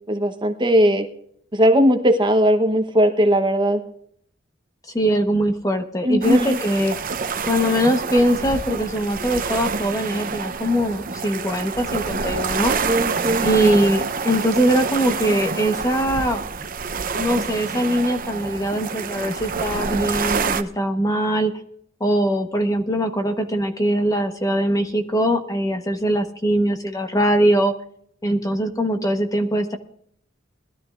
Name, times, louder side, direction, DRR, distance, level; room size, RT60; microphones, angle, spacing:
voice 1, 0.1-1.1 1.5-3.8 6.0-6.6 12.8-13.5, equal, 25° right, 6 dB, 1.0 m, -18 dB
voice 2, 4.9-7.0 7.4-12.7 13.4-16.4 17.2-21.5 22.0-27.7 28.2-29.8, equal, 20° left, 6 dB, 1.1 m, -21 dB
sound 1, 6.2-20.6, right 5 dB, 45° right, 0.8 m, -27 dB
21.0 x 12.5 x 2.5 m, 0.65 s
head